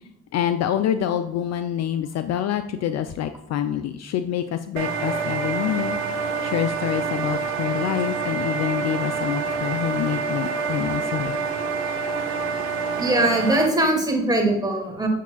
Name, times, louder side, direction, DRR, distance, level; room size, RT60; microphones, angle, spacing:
voice 1, 0.3-11.4, left 10 dB, 50° left, 10 dB, 0.4 m, -26 dB
sound 1, 4.8-13.7, right 5 dB, 80° right, 1.2 m, -27 dB
voice 2, 13.0-15.1, right 1 dB, 10° right, 1 dB, 2.1 m, -21 dB
7.4 x 6.6 x 2.3 m, 0.90 s
hypercardioid pair, 55°, 34 cm